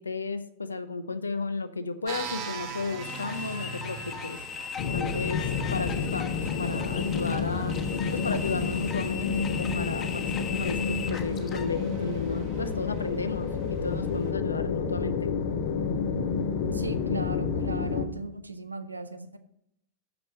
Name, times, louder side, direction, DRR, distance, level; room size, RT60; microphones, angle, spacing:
voice 1, 0.0-4.4 4.9-5.4 5.7-7.8 8.1-15.3, left 4 dB, 75° left, 11 dB, 0.7 m, -33 dB
sound 1, 2.1-14.3, right 5 dB, 40° right, 1.6 m, -43 dB
sound 2, 3.0-11.7, left 7 dB, 30° left, 1.2 m, -38 dB
sound 3, 4.8-18.1, left 5 dB, 50° left, 0.8 m, -30 dB
voice 2, 16.7-19.4, right 2 dB, 80° right, 10 dB, 0.8 m, -38 dB
6.8 x 6.0 x 7.4 m, 0.75 s
figure-of-eight pair, 90°, 0 cm